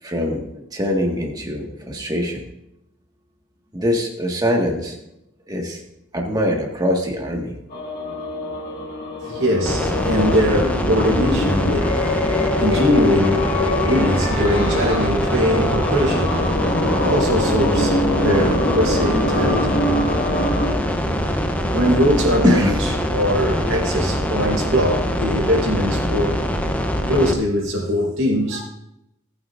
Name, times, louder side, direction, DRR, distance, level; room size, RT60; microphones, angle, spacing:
voice 1, 0.0-2.5 3.7-5.0 5.5-5.8 6.1-7.5 22.4-22.7 23.6-23.8, equal, 20° right, 1.8 m, -23 dB
sound 1, 7.7-20.7, left 2 dB, 45° left, 2.0 m, -24 dB
voice 2, 9.2-20.3 20.7-21.4 21.7-22.7 23.1-26.4 27.1-28.6, equal, 65° right, 4.8 m, -22 dB
sound 2, 9.7-27.3, equal, 5° left, 0.8 m, -23 dB
19.0 x 9.4 x 2.6 m
head